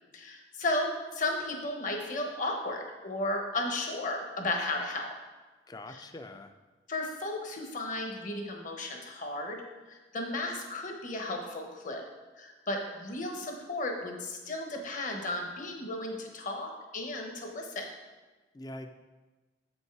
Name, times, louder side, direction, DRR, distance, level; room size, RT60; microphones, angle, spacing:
voice 1, 0.1-5.1 5.9-6.0 6.9-9.6 9.9-12.0 12.4-17.9, left 2 dB, 45° left, 2 dB, 1.1 m, -34 dB
voice 2, 5.7-6.5 18.5-18.9, left 1 dB, 20° left, 8 dB, 0.4 m, -43 dB
7.5 x 5.3 x 4.7 m, 1.2 s
head